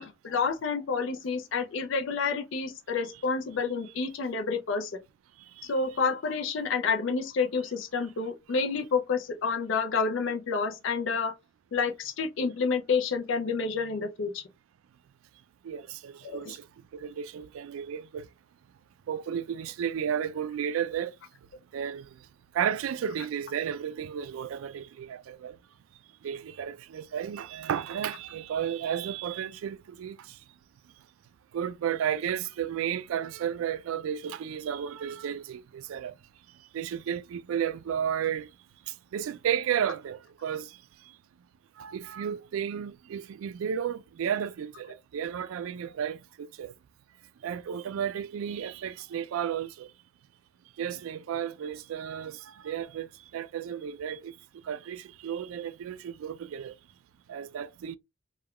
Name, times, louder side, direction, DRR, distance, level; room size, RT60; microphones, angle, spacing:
voice 1, 0.0-5.0 5.6-11.3 11.7-14.4 16.2-16.5, left 5 dB, 65° left, 0.4 m, -29 dB
voice 2, 15.6-16.7 16.9-18.3 19.1-21.1 21.7-22.1 22.5-25.6 26.2-30.2 31.5-36.1 36.7-38.5 39.1-40.7 41.8-46.7 47.4-49.9 50.8-53.1 53.3-54.3 54.7-56.7 57.3-58.0, right 8 dB, 80° right, 0.3 m, -33 dB
3.5 x 2.2 x 2.2 m
head